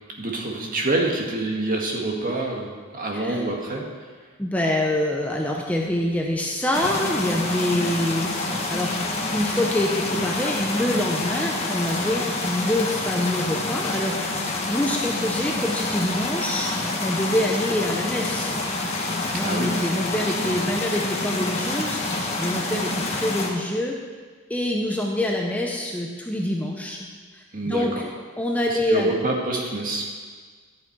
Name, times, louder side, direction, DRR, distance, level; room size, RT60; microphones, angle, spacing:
voice 1, 0.2-3.9 19.3-19.8 20.4-20.6 27.5-28.0 28.9-30.1, right 2 dB, 40° right, 0 dB, 1.8 m, -26 dB
voice 2, 3.1-3.4 4.4-8.3 8.7-9.0 9.3-16.7 17.0-18.6 19.3-22.0 22.4-24.0 24.5-27.0 27.3-28.1 28.4-29.1, left 1 dB, 5° left, 0 dB, 0.9 m, -25 dB
sound 1, 6.7-23.5, left 2 dB, 30° left, 1.5 m, -27 dB
13.5 x 8.8 x 4.7 m, 1.5 s
head